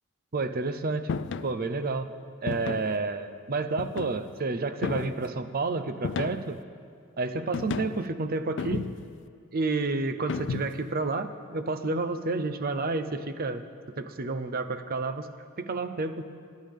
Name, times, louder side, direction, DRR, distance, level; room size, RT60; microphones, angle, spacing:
voice 1, 0.3-1.1 1.4-2.1 2.4-6.6 7.2-8.8 9.5-13.6 14.0-15.3 15.6-16.3, right 3 dB, 45° right, 10 dB, 0.7 m, -30 dB
sound 1, 1.1-1.5 2.5-3.0 3.8-4.3 4.8-5.3 6.0-6.6 7.5-8.1 8.6-9.2 10.3-10.9, left 5 dB, 60° left, 0.4 m, -33 dB
26.0 x 9.4 x 3.6 m, 2.3 s
head